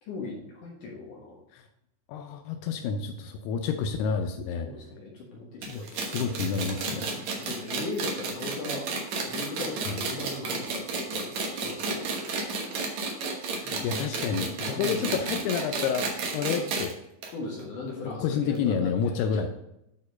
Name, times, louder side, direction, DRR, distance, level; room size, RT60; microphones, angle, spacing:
voice 1, 0.0-1.4 4.6-6.4 6.9-8.8 9.3-12.5 14.8-15.4 17.3-19.5, left 2 dB, 65° left, -2 dB, 2.1 m, -39 dB
voice 2, 2.1-4.7 5.7-7.1 9.9-10.0 13.6-17.0 18.0-19.5, left 6 dB, 90° left, 5 dB, 2.3 m, -29 dB
sound 1, 5.6-16.9 17.2-17.3 17.6-17.7 18.5-18.6, right 3 dB, 80° right, 1.6 m, -32 dB
9.6 x 4.4 x 5.1 m, 0.81 s
omnidirectional pair, 5.3 m